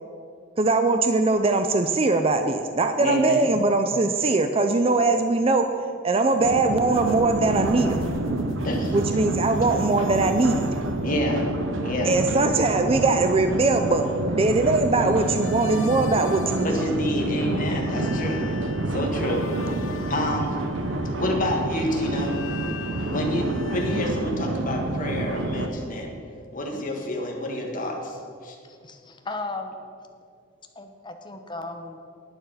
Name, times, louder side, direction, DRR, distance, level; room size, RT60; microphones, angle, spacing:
voice 1, 0.6-5.7 6.0-8.0 8.9-10.8 12.0-16.9, right 3 dB, 30° right, 7 dB, 0.5 m, -21 dB
voice 2, 3.0-3.5 8.6-8.9 11.0-11.5 11.8-12.2 16.6-18.4 18.9-20.6 21.2-22.3 23.1-26.1 26.5-28.5, left 1 dB, 40° left, 1 dB, 1.7 m, -28 dB
sound 1, 6.4-25.7, right 2 dB, 65° right, 0.8 m, -28 dB
sound 2, 6.9-11.1 14.9-17.3 17.6-24.1, left 3 dB, 75° left, 0.7 m, -41 dB
voice 3, 28.6-29.8 30.8-32.0, left 2 dB, 25° left, 6 dB, 0.8 m, -36 dB
11.0 x 9.1 x 5.6 m, 2.3 s
head